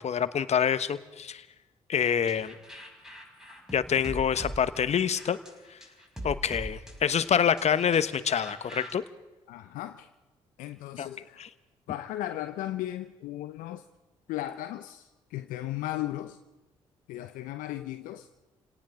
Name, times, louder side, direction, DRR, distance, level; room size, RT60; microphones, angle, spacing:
voice 1, 0.0-1.4 1.9-2.5 3.7-5.4 6.2-9.0 11.0-11.1 11.4-11.5, left 8 dB, 50° left, 1.2 m, -26 dB
sound 1, 2.0-8.9, right 1 dB, 5° right, 5.4 m, -42 dB
voice 2, 9.5-10.1 10.6-11.4 11.9-13.8 14.3-16.4 17.1-18.3, left 14 dB, 75° left, 0.7 m, -36 dB
28.5 x 18.0 x 5.0 m
hypercardioid pair, 45°, 14 cm